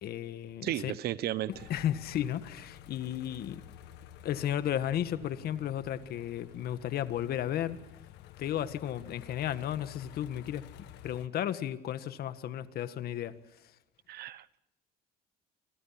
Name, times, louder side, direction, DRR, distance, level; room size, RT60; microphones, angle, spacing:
voice 1, 0.0-0.9 1.5-3.6 4.2-7.8 8.4-10.7 11.0-13.4, left 11 dB, 65° left, 1.7 m, -34 dB
voice 2, 0.6-1.5 14.1-14.6, right 13 dB, 70° right, 1.1 m, -34 dB
sound 1, 1.5-11.3, left 12 dB, 85° left, 1.6 m, -51 dB
28.5 x 25.5 x 5.9 m
cardioid pair, 110°, 17 cm